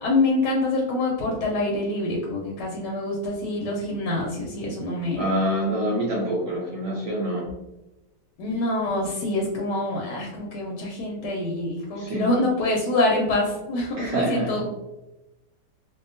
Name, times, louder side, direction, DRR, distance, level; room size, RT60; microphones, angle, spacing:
voice 1, 0.0-5.2 8.4-14.7, left 2 dB, 80° left, -1 dB, 1.2 m, -25 dB
voice 2, 5.1-7.5 12.0-12.3 14.0-14.6, equal, 75° right, -4 dB, 0.7 m, -26 dB
2.7 x 2.4 x 2.5 m, 0.99 s
omnidirectional pair, 1.8 m